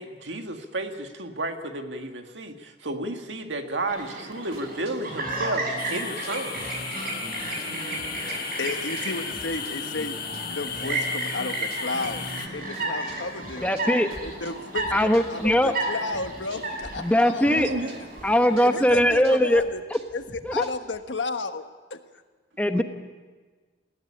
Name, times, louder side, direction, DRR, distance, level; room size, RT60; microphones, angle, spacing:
voice 1, 0.0-6.6 17.4-18.0 22.7-22.8, right 2 dB, 85° right, 5 dB, 1.9 m, -32 dB
Chirp tweet, 3.9-19.0, right 2 dB, 55° right, 7.0 m, -33 dB
sound 1, 4.5-15.5 15.8-16.9 17.2-21.0, right 1 dB, 35° right, 2.8 m, -44 dB
sound 2, 5.8-12.5, left 8 dB, 55° left, 1.6 m, -36 dB
voice 2, 8.6-10.2 10.5-12.3 12.5-13.7 14.2-17.9 18.6-19.8 20.1-21.6 21.9-22.0, left 3 dB, 80° left, 8 dB, 1.3 m, -33 dB
voice 3, 13.6-14.1 14.9-15.7 17.0-17.7 18.2-19.6 19.9-20.0 20.4-20.7 22.6-22.8, equal, 10° left, 7 dB, 1.2 m, -21 dB
20.0 x 16.0 x 10.0 m, 1.4 s
head